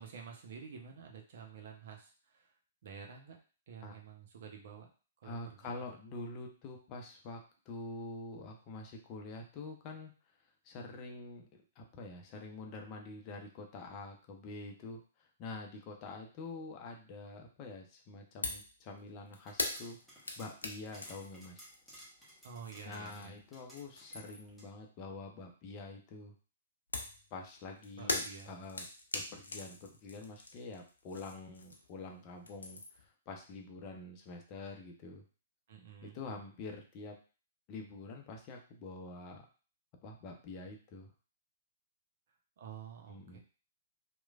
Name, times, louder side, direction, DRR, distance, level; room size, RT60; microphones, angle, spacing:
voice 1, 0.0-2.5 2.8-3.4 3.7-4.9 5.2-5.7 22.4-23.4 28.0-28.5 35.7-36.2 42.6-43.4, right 6 dB, 55° right, 2 dB, 0.7 m, -50 dB
voice 2, 5.2-10.1 10.6-11.5 11.8-21.6 22.8-26.3 27.3-28.9 29.1-35.2 36.0-37.2 37.7-39.5 40.0-41.1 43.1-43.4, left 3 dB, 35° left, 2 dB, 0.6 m, -46 dB
sound 1, 18.4-18.7 19.0-23.5 23.8-24.6 26.9-32.0 32.3-33.1, left 2 dB, 75° left, 0.5 m, -41 dB
sound 2, 19.4-24.7, equal, ahead, 1.0 m, -58 dB
3.1 x 2.2 x 2.4 m, 0.37 s
figure-of-eight pair, 115°, 0 cm